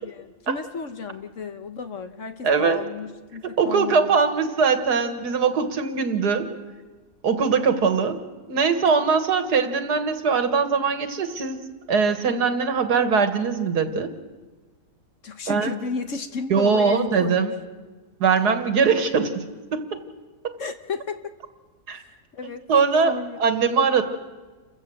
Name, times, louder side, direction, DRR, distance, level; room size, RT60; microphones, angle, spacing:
voice 1, 0.0-4.2 15.2-17.4 20.6-21.3 21.9-22.6 23.0-23.4, left 5 dB, 55° left, 8 dB, 1.3 m, -33 dB
voice 2, 2.4-2.8 3.4-6.5 7.2-8.2 8.5-14.1 15.5-15.7 16.5-17.5 18.2-19.3 19.7-20.0 20.4-20.6 21.9-22.0 22.7-23.1 23.4-24.0, right 5 dB, 75° right, 8 dB, 2.1 m, -21 dB
28.5 x 14.5 x 7.8 m, 1.3 s
omnidirectional pair, 1.7 m